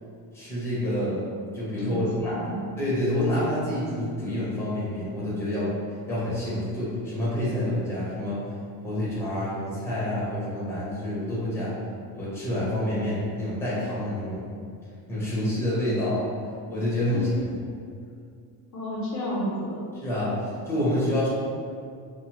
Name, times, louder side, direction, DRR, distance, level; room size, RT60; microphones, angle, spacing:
voice 1, 0.3-1.2 1.5-2.5 2.8-5.7 6.1-8.4 8.8-11.7 12.1-14.4 15.1-16.3 16.7-17.5 19.9-21.3, left 1 dB, 5° left, -9 dB, 0.7 m, -28 dB
voice 2, 1.8-2.6 17.1-17.3 18.7-19.8, equal, 40° left, -6 dB, 0.4 m, -31 dB
2.6 x 2.1 x 2.9 m, 2.3 s
cardioid pair, 135°, 50 cm